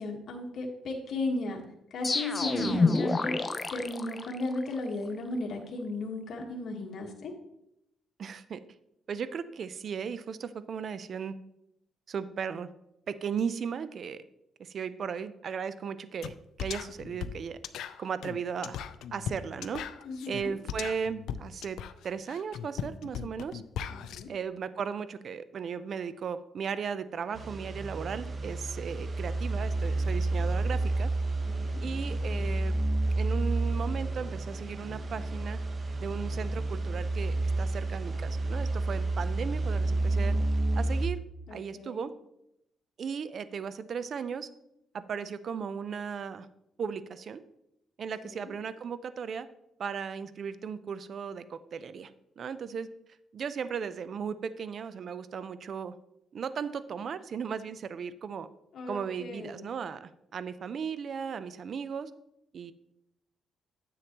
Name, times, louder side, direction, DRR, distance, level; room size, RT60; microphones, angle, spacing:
voice 1, 0.0-1.6 1.9-3.4 3.7-7.3 20.0-20.5 23.9-24.3 31.4-31.8 41.5-42.1 48.2-48.5 58.7-59.7, left 2 dB, 60° left, 0 dB, 1.4 m, -35 dB
sound 1, 2.0-4.8, left 3 dB, 25° left, 0.6 m, -28 dB
voice 2, 8.2-8.6 9.1-11.3 12.1-12.7 13.1-14.2 14.6-17.6 18.0-18.8 19.1-19.8 20.3-21.8 22.0-23.6 24.3-31.1 31.8-32.7 33.2-35.6 36.0-40.4 40.8-41.2 41.5-42.1 43.0-44.5 44.9-46.5 46.8-47.4 48.0-49.5 49.8-52.1 52.4-52.9 53.3-55.9 56.3-58.5 58.9-62.1 62.5-62.7, right 6 dB, 55° right, 14 dB, 0.5 m, -36 dB
sound 2, 16.2-16.3 16.6-24.2, left 9 dB, 80° left, 0.4 m, -38 dB
sound 3, 27.3-41.1, right 2 dB, 40° right, 0.9 m, -30 dB
9.9 x 7.6 x 3.0 m, 0.82 s
cardioid pair, 90°, 0 cm